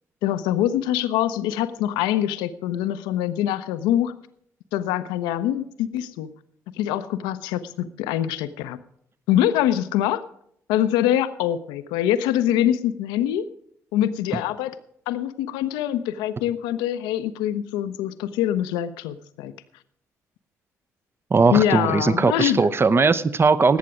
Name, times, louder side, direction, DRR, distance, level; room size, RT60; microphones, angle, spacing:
voice 1, 0.2-4.1 4.7-6.3 6.8-8.8 9.3-10.2 10.7-13.5 13.9-14.7 15.1-19.5 21.5-22.7, left 11 dB, 70° left, 13 dB, 0.6 m, -24 dB
voice 2, 21.3-23.8, right 4 dB, 30° right, 15 dB, 0.7 m, -19 dB
18.5 x 8.4 x 5.0 m, 0.69 s
figure-of-eight pair, 40°, 8 cm